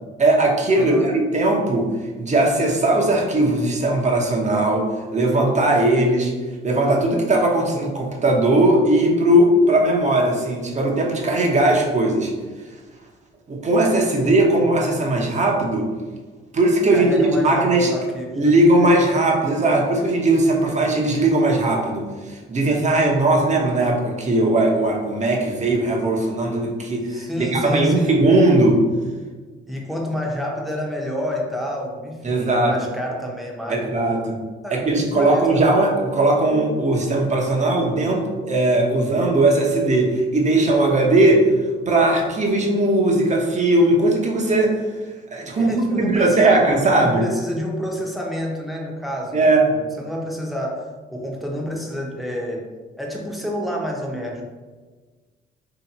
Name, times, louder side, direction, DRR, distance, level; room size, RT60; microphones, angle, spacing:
voice 1, 0.2-1.9 2.2-6.3 6.6-12.3 13.5-15.9 16.5-17.9 18.4-28.8 32.2-32.7 33.7-34.4 34.7-41.4 41.9-44.7 45.3-47.3 49.3-49.7, right 2 dB, 35° right, 0 dB, 0.9 m, -18 dB
voice 2, 0.7-1.1 14.2-14.6 16.9-18.5 27.1-28.2 29.7-33.9 34.6-35.8 45.4-50.9 51.1-52.6 53.0-54.4, left 1 dB, ahead, -2 dB, 0.9 m, -29 dB
3.1 x 2.9 x 4.1 m, 1.4 s
cardioid pair, 90°, 20 cm